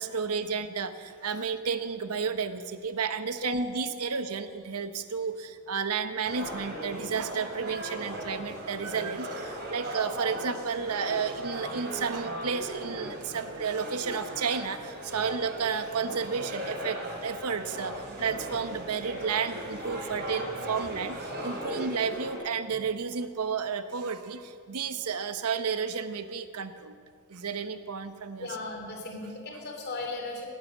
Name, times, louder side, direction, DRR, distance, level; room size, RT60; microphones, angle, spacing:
voice 1, 0.0-27.0 27.3-28.5, right 5 dB, 90° right, 11 dB, 0.9 m, -32 dB
sound 1, 6.3-22.4, right 1 dB, 45° right, 2.8 m, -38 dB
voice 2, 28.4-30.6, left 3 dB, 45° left, 2 dB, 2.9 m, -36 dB
18.0 x 9.8 x 7.4 m, 2.2 s
head